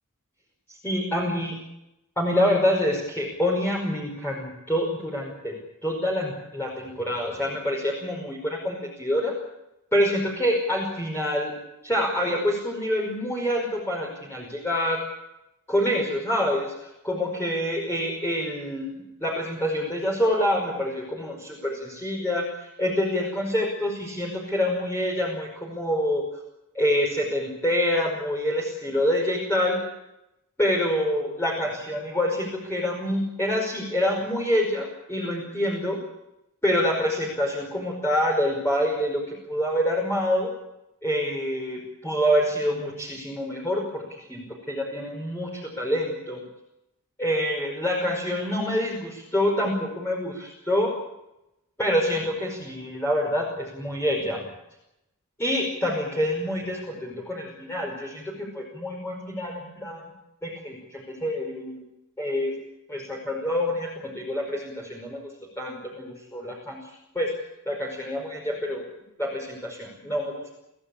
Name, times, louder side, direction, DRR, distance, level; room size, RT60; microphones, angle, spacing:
voice 1, 0.7-1.5 2.2-5.6 5.8-9.3 9.9-11.5 11.8-15.0 15.7-26.2 26.7-29.8 30.6-36.0 36.6-40.5 41.0-46.4 47.2-50.9 51.8-54.5 55.4-60.1 60.4-61.8 62.2-62.6 62.9-65.2 65.6-67.3 67.7-68.8 69.2-70.5, equal, 10° left, -2 dB, 5.3 m, -26 dB
27.0 x 16.5 x 8.6 m, 0.89 s
head